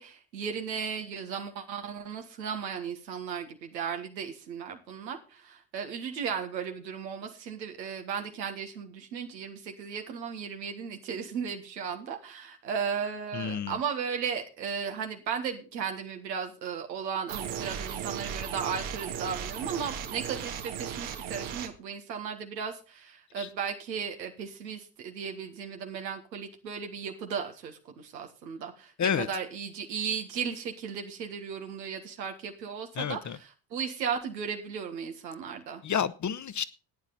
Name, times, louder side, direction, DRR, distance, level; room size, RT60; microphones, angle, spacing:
voice 1, 0.0-35.8, right 6 dB, 85° right, 1.7 m, -36 dB
voice 2, 13.3-13.8 23.4-23.5 29.0-29.3 33.0-33.4 35.8-36.6, left 7 dB, 35° left, 1.0 m, -30 dB
sound 1, 17.3-21.7, right 8 dB, 65° right, 1.8 m, -36 dB
14.0 x 9.7 x 4.1 m
hypercardioid pair, 50°, 50 cm